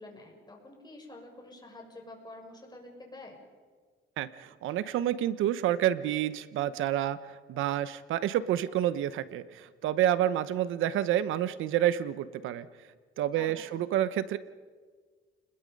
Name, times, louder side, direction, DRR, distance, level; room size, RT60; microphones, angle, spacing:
voice 1, 0.0-3.4 13.3-13.8, left 2 dB, 20° left, 1 dB, 6.6 m, -48 dB
voice 2, 4.2-7.2 7.5-12.7 13.2-14.4, right 12 dB, 85° right, 14 dB, 1.0 m, -29 dB
30.0 x 21.0 x 5.4 m, 1.5 s
cardioid pair, 90°, 20 cm